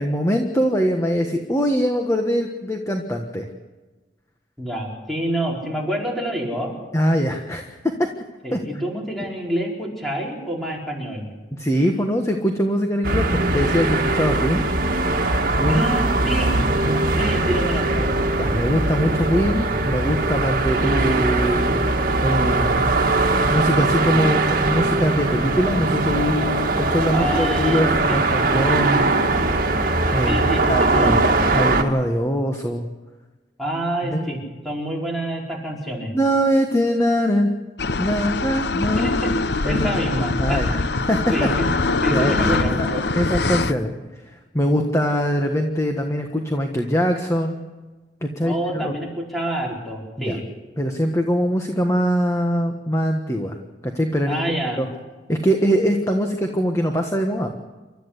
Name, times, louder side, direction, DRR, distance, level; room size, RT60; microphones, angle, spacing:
voice 1, 0.0-3.5 6.9-7.9 8.5-8.6 11.6-14.7 15.6-16.0 16.8-17.0 18.4-21.9 22.2-22.9 23.5-29.1 30.1-30.4 30.7-32.8 34.0-34.3 36.1-37.5 38.0-39.2 39.6-39.9 40.4-40.8 41.1-41.5 42.1-42.9 43.1-43.9 44.5-47.6 48.2-48.9 50.2-50.4 50.8-53.5 53.8-54.4 54.8-54.9 55.3-57.5, equal, 15° left, 4 dB, 1.4 m, -22 dB
voice 2, 4.6-6.7 8.4-11.3 15.7-16.5 17.1-18.1 27.1-28.2 30.2-31.4 33.6-34.4 34.6-36.1 39.0-39.3 39.6-40.6 41.3-41.6 42.0-43.0 48.4-50.4 54.3-54.8, right 1 dB, ahead, -2 dB, 4.9 m, -27 dB
sound 1, 13.0-31.8, right 2 dB, 50° right, 2.0 m, -21 dB
sound 2, 37.8-43.7, left 3 dB, 70° left, 0.8 m, -23 dB
29.0 x 13.0 x 8.3 m, 1.2 s
head